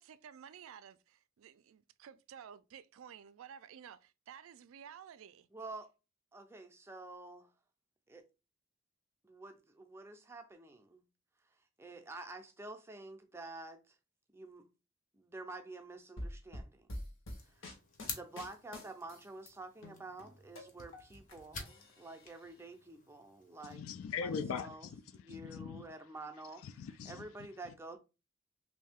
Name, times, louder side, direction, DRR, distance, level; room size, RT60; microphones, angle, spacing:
voice 1, 0.0-5.5, right 8 dB, 80° right, 0.3 m, -53 dB
voice 2, 5.5-5.9 6.3-7.5 8.1-8.3 9.2-11.0 11.8-13.9 14.3-14.7 15.1-16.9 17.5-17.8 18.0-23.8 24.2-24.9 25.2-26.7 27.1-28.0, right 2 dB, 10° right, 0.4 m, -49 dB
sound 1, 16.2-19.5 19.8-21.4 21.7-22.5, left 1 dB, 65° left, 1.0 m, -47 dB
sound 2, 17.3-23.8, left 4 dB, 40° left, 0.7 m, -50 dB
voice 3, 23.6-25.9 26.3-27.8, left 6 dB, 80° left, 0.3 m, -42 dB
3.2 x 2.6 x 3.5 m
head